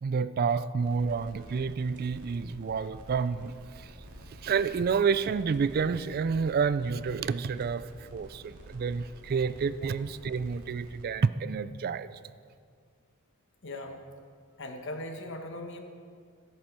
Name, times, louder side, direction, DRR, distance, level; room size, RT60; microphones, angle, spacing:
voice 1, 0.0-3.9 4.4-12.1, right 5 dB, 45° right, 14 dB, 0.3 m, -29 dB
sound 1, 0.8-11.0, equal, 80° right, 2.3 m, -50 dB
voice 2, 13.6-14.1 14.6-15.8, left 1 dB, 55° left, 4 dB, 1.3 m, -39 dB
13.5 x 8.9 x 6.0 m, 2.1 s
head